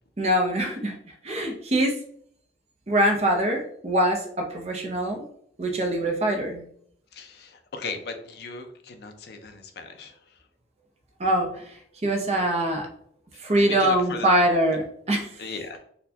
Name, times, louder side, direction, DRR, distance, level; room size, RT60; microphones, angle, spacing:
voice 1, 0.2-1.0 1.2-1.9 2.9-5.2 5.6-6.6 11.2-12.9 13.4-15.4, right 1 dB, 35° right, 1 dB, 0.6 m, -23 dB
voice 2, 7.1-10.3 13.5-14.3 15.4-15.8, left 4 dB, 60° left, 6 dB, 0.5 m, -37 dB
4.2 x 2.2 x 2.7 m, 0.64 s
head